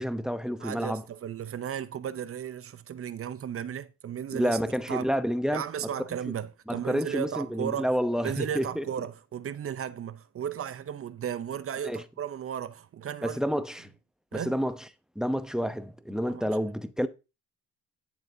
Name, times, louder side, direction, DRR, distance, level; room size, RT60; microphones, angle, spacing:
voice 1, 0.0-1.0 4.3-5.6 6.7-8.9 11.8-12.0 13.2-13.9 14.3-14.8 15.2-17.1, equal, ahead, 0.7 m, -29 dB
voice 2, 0.6-4.6 4.9-5.1 5.5-7.9 8.2-13.6 14.3-14.6 16.3-16.6, right 9 dB, 50° right, 0.7 m, -35 dB
10.5 x 7.1 x 2.7 m
cardioid pair, 90°, 30 cm